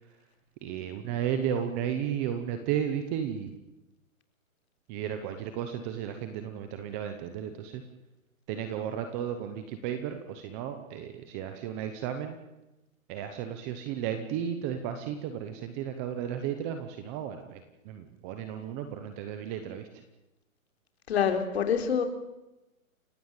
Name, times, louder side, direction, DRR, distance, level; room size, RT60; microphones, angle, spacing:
voice 1, 0.6-3.5 4.9-7.8 8.5-12.4 13.1-20.0, right 9 dB, 10° right, 8 dB, 0.8 m, -34 dB
voice 2, 21.1-22.0, left 7 dB, 45° left, 7 dB, 4.0 m, -26 dB
29.0 x 16.5 x 9.0 m, 0.98 s
hypercardioid pair, 165°, 42 cm